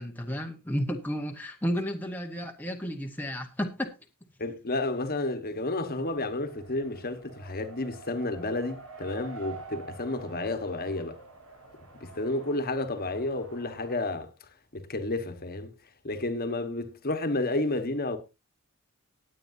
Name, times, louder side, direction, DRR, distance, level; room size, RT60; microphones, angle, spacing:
voice 1, 0.0-3.9, equal, 10° left, 1.0 m, -32 dB
voice 2, 4.4-11.2 12.0-15.7 16.0-18.2, left 2 dB, 45° left, 1.3 m, -31 dB
Race car auto racing, 5.8-13.9, right 3 dB, 70° right, 7.4 m, -47 dB
19.0 x 8.5 x 2.7 m
head